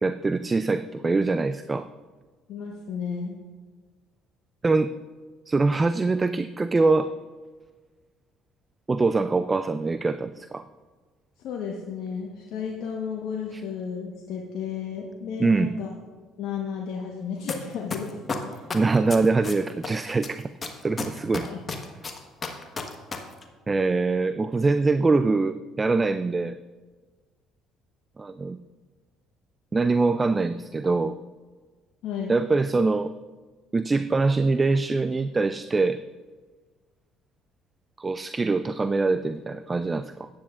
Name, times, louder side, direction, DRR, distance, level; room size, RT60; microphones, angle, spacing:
voice 1, 0.0-1.9 4.6-4.9 5.5-7.1 8.9-10.7 13.5-13.6 15.4-15.7 18.7-20.5 20.8-21.5 23.7-26.6 28.2-28.6 29.7-31.2 32.3-33.1 33.7-36.0 38.0-40.3, right 3 dB, 25° right, 12 dB, 0.3 m, -23 dB
voice 2, 2.5-3.4 11.4-15.9 16.4-18.2 18.5-18.6 21.4-21.6 32.0-32.4, left 6 dB, 70° left, -1 dB, 1.1 m, -33 dB
sound 1, 17.5-17.6 17.9-19.9 20.2-23.2 23.4-23.5, left 4 dB, 35° left, 1.3 m, -31 dB
14.0 x 9.8 x 2.4 m, 1.4 s
supercardioid pair, 70°, 0 cm